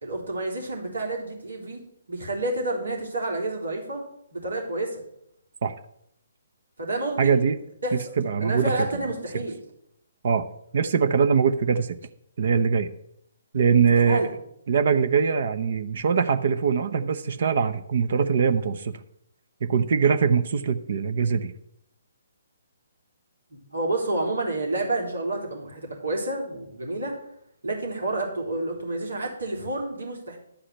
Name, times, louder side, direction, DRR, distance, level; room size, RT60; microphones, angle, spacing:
voice 1, 0.0-1.8 2.1-4.0 4.3-5.0 6.8-7.4 7.8-8.1 8.4-9.6 14.1-14.4 23.5-27.2 27.6-30.4, right 2 dB, 75° right, -1 dB, 3.8 m, -29 dB
voice 2, 7.2-7.6 7.9-8.9 10.2-10.5 10.7-11.9 12.4-12.9 13.5-14.3 14.7-18.9 19.6-21.5, right 6 dB, 55° right, 10 dB, 0.8 m, -22 dB
11.5 x 4.9 x 8.6 m, 0.74 s
figure-of-eight pair, 135°, 0 cm